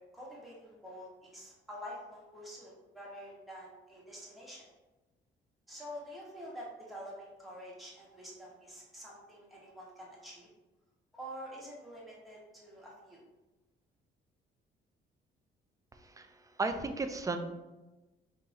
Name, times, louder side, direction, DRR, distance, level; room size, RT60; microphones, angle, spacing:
voice 1, 0.0-4.7 5.7-10.5 11.1-13.2, equal, ahead, -5 dB, 1.5 m, -47 dB
voice 2, 16.0-17.4, right 3 dB, 15° right, 7 dB, 0.4 m, -35 dB
3.8 x 2.6 x 4.1 m, 1.1 s
cardioid pair, 90°, 20 cm